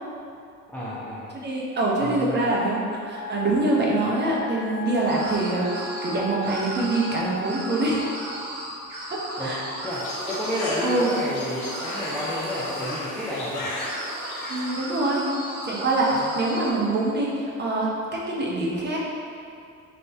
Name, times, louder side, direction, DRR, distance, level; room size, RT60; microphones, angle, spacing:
voice 1, 0.7-1.3 2.0-2.4 9.4-13.8 16.3-16.4, left 1 dB, 5° left, -8 dB, 0.4 m, -31 dB
voice 2, 1.4-2.8 3.0-8.0 9.1-9.6 10.8-11.1 14.5-15.3 15.6-19.0, right 2 dB, 25° right, -4 dB, 0.8 m, -25 dB
Wind instrument woodwind instrument, 3.1-8.3, left 1 dB, 55° left, 1.1 m, -37 dB
sound 1, 5.1-6.1 6.4-7.2 7.4-11.2 11.6-13.0 13.7-16.7, right 1 dB, 45° right, 1.2 m, -36 dB
sound 2, 9.9-14.7, left 1 dB, 85° left, 0.6 m, -34 dB
3.5 x 2.4 x 3.4 m, 2.5 s
figure-of-eight pair, 60°, 42 cm